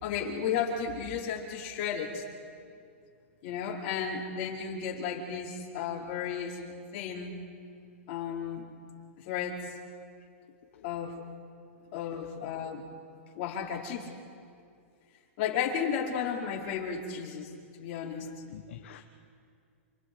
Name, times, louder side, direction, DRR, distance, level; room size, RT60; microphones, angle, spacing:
voice 1, 0.0-2.2 3.4-6.6 6.9-7.3 8.1-8.6 9.2-9.7 10.8-11.2 11.9-12.8 13.3-14.1 15.4-17.5 17.8-18.3, left 7 dB, 40° left, -2 dB, 4.9 m, -33 dB
voice 2, 18.2-19.0, left 11 dB, 60° left, 6 dB, 1.2 m, -48 dB
28.5 x 28.5 x 4.8 m, 2.3 s
hypercardioid pair, 155°, 7 cm